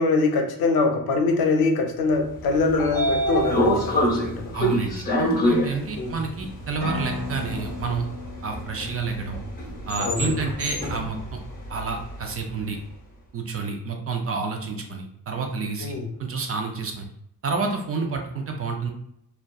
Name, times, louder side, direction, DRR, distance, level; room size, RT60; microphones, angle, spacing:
voice 1, 0.0-4.6 6.0-6.2 10.0-10.5 15.8-16.1, left 3 dB, 85° left, 4 dB, 0.5 m, -23 dB
Train / Sliding door, 2.4-12.5, equal, 25° left, 0.7 m, -27 dB
voice 2, 4.5-8.0 8.4-9.4 9.9-11.4 11.7-12.8 13.3-15.9 16.2-17.0 17.4-18.9, right 4 dB, 40° right, 3 dB, 0.4 m, -29 dB
sound 1, 6.8-10.6, left 4 dB, 85° right, 1.2 m, -37 dB
2.6 x 2.2 x 2.2 m, 0.75 s
wide cardioid pair, 130°, 36 cm